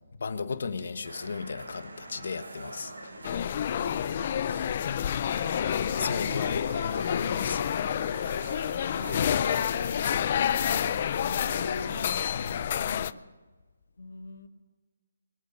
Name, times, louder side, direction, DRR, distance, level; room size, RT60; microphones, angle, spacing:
voice 1, 0.2-3.3 6.0-8.2 12.3-12.8, left 5 dB, 60° left, 9 dB, 1.5 m, -36 dB
sound 1, 1.0-12.2, right 2 dB, 90° right, 4.9 m, -44 dB
voice 2, 3.1-5.9 7.8-12.1 12.8-13.2 14.0-14.5, left 2 dB, 85° left, 6 dB, 2.1 m, -44 dB
sound 2, 3.2-13.1, left 9 dB, 35° left, 0.4 m, -29 dB
Crowd, 5.2-13.2, right 2 dB, 60° right, 3.6 m, -46 dB
23.5 x 8.4 x 6.5 m, 1.3 s
hypercardioid pair, 170°, 0 cm